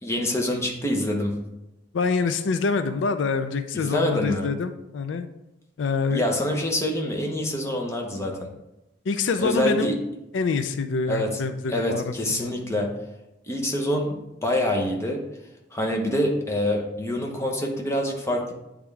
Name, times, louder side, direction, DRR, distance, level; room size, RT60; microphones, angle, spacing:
voice 1, 0.0-1.3 3.7-4.5 6.1-8.5 9.4-10.0 11.1-11.4 11.7-12.9 13.5-15.2 15.7-18.5, left 1 dB, 15° left, 0 dB, 0.9 m, -26 dB
voice 2, 1.9-5.3 5.8-6.6 9.1-9.9 10.3-12.5, left 4 dB, 90° left, 9 dB, 0.4 m, -26 dB
8.6 x 3.6 x 3.4 m, 0.91 s
head